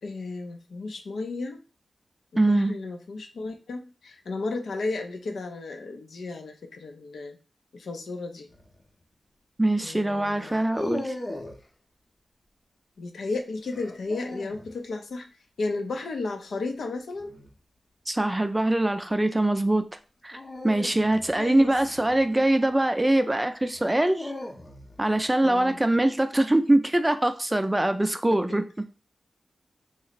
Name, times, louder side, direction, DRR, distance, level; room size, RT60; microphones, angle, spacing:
voice 1, 0.0-1.6 2.3-7.4 7.7-8.5 9.8-10.6 13.0-17.4 21.3-21.7 25.4-25.8 28.1-28.4, left 3 dB, 85° left, 4 dB, 0.5 m, -34 dB
voice 2, 2.4-2.7 9.6-11.1 18.1-19.8 20.2-24.3 25.0-28.8, right 1 dB, 15° right, 9 dB, 0.4 m, -23 dB
sound 1, 8.5-8.8 10.4-11.6 13.7-14.7 17.1-17.5 20.3-22.7 23.7-25.0, left 2 dB, 40° left, 0.7 m, -38 dB
3.1 x 2.0 x 4.0 m, 0.34 s
cardioid pair, 60°, 0 cm